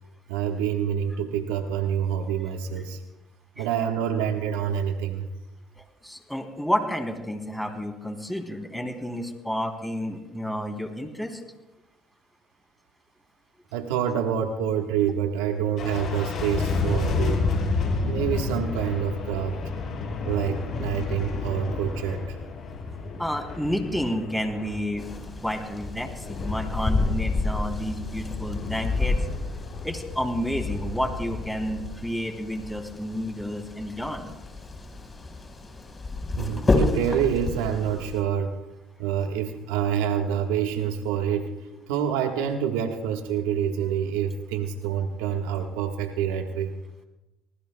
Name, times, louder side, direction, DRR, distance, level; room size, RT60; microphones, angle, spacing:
voice 1, 0.3-3.0 3.6-5.3 13.7-17.5 18.0-19.6 20.3-22.4 36.4-38.6 39.0-41.5 41.9-46.7, right 8 dB, 85° right, 3 dB, 1.4 m, -27 dB
voice 2, 5.8-11.4 23.2-25.0 25.4-29.3 29.8-34.3, equal, 5° left, 3 dB, 3.3 m, -30 dB
sound 1, 15.8-32.0, left 4 dB, 55° left, 6.8 m, -31 dB
sound 2, 25.0-38.2, left 2 dB, 25° left, 4.9 m, -30 dB
28.5 x 19.5 x 2.3 m, 1.0 s
supercardioid pair, 75°, 0 cm